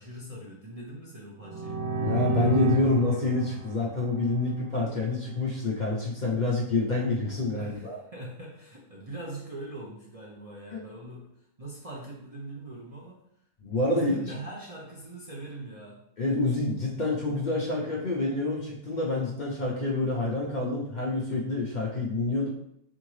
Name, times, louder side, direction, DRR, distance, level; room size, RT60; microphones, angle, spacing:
voice 1, 0.0-1.8 7.5-11.3 11.6-13.2 13.9-16.0, right 2 dB, 45° right, -5 dB, 0.5 m, -42 dB
sound 1, 1.4-5.1, right 4 dB, 60° right, 1.0 m, -31 dB
voice 2, 2.0-8.0 10.7-10.8 13.6-14.4 16.2-22.5, left 2 dB, 50° left, -3 dB, 0.5 m, -27 dB
3.6 x 3.6 x 3.1 m, 0.74 s
omnidirectional pair, 1.5 m